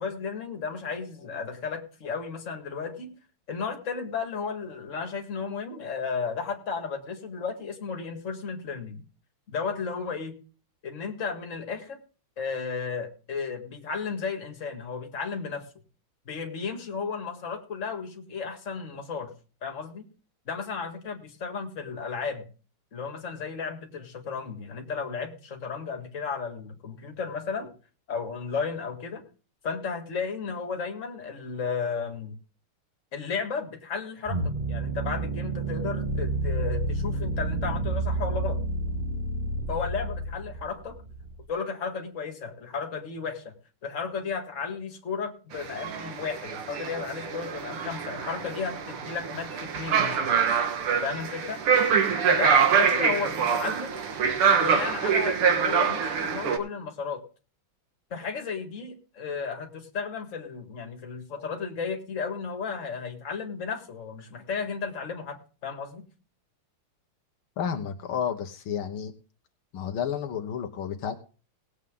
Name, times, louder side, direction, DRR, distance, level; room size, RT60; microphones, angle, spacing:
voice 1, 0.0-3.1 3.5-9.0 9.5-10.4 10.8-12.0 12.4-15.7 16.3-19.3 19.6-20.0 20.5-22.5 22.9-27.7 28.1-29.2 29.6-32.3 33.1-34.4 34.7-38.6 39.7-41.0 41.5-43.5 43.8-50.4 51.0-51.6 52.3-54.0 54.6-57.2 58.1-66.1, left 5 dB, 35° left, 4 dB, 2.2 m, -34 dB
sound 1, 34.3-41.4, right 2 dB, 25° right, 1.6 m, -30 dB
sound 2, 45.5-56.6, right 6 dB, 90° right, 2.4 m, -25 dB
voice 2, 67.6-69.1 69.7-71.1, left 8 dB, 80° left, 5 dB, 2.0 m, -31 dB
19.0 x 8.2 x 3.7 m, 0.37 s
omnidirectional pair, 2.3 m